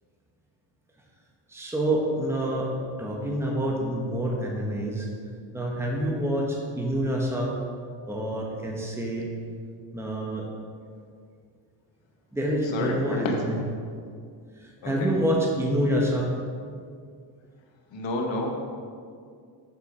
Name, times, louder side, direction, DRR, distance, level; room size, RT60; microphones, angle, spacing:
voice 1, 1.5-2.7 3.0-5.1 5.5-7.6 8.1-9.3 9.9-10.5 12.3-13.6 14.6-16.3, right 1 dB, 5° right, -2 dB, 1.4 m, -27 dB
voice 2, 12.6-13.3 14.8-15.1 17.9-18.5, left 2 dB, 65° left, 1 dB, 1.6 m, -29 dB
7.4 x 6.2 x 5.0 m, 2.2 s
supercardioid pair, 75°, 48 cm